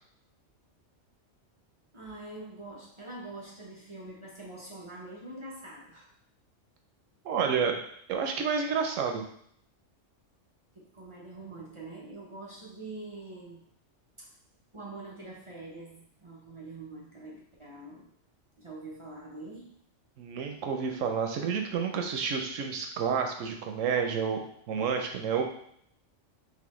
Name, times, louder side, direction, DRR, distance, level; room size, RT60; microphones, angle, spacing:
voice 1, 1.9-6.1 10.8-13.6 14.2-14.3 14.7-18.1 18.6-19.8, right 2 dB, 30° right, -4 dB, 0.6 m, -44 dB
voice 2, 7.2-7.8 8.1-9.2 20.2-25.4, right 6 dB, 90° right, 4 dB, 1.0 m, -30 dB
4.1 x 3.1 x 3.0 m, 0.67 s
omnidirectional pair, 1.3 m